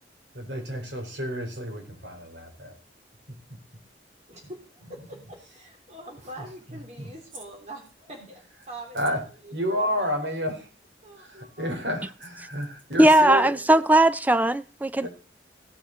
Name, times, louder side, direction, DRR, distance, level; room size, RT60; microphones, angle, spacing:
voice 1, 0.3-2.8 3.3-3.4 4.4-4.5 6.4-7.1 8.1-8.3 8.9-9.2 9.5-10.7 11.2-13.7 15.0-15.1, equal, 80° right, 3.9 m, -31 dB
voice 2, 4.3-8.4 8.7-9.0 9.4-10.3 11.0-11.8, right 1 dB, 40° right, 3.4 m, -43 dB
voice 3, 13.0-15.1, right 1 dB, 10° right, 0.5 m, -18 dB
17.0 x 6.4 x 4.4 m
head